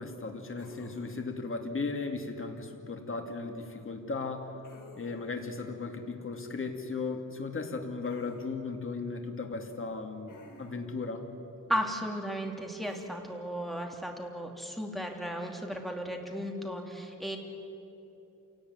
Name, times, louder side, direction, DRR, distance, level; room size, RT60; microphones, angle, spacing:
voice 1, 0.0-4.5 5.0-11.3, left 4 dB, 40° left, 4 dB, 2.6 m, -36 dB
sound 1, 0.6-1.3 4.6-5.4 8.0-8.4 10.3-10.9 12.8-13.1, left 3 dB, 70° left, 4.4 m, -52 dB
voice 2, 11.7-17.4, equal, ahead, 2 dB, 2.9 m, -35 dB
27.5 x 18.0 x 9.6 m, 2.9 s
wide cardioid pair, 120°, 31 cm